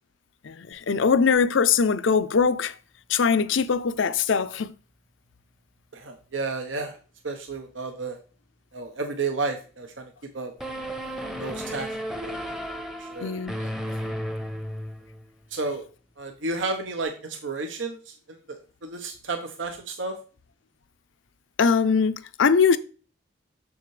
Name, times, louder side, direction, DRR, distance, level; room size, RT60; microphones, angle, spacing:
voice 1, 0.4-2.8 3.1-4.7 13.2-13.5 21.6-22.8, left 5 dB, 80° left, 0.6 m, -21 dB
voice 2, 5.9-7.0 7.2-8.2 8.7-10.5 11.4-12.0 12.2-12.6 13.0-13.4 15.5-15.8 16.2-20.1, right 3 dB, 85° right, 1.0 m, -32 dB
sound 1, 10.6-15.2, equal, ahead, 0.7 m, -33 dB
7.1 x 6.7 x 3.2 m
head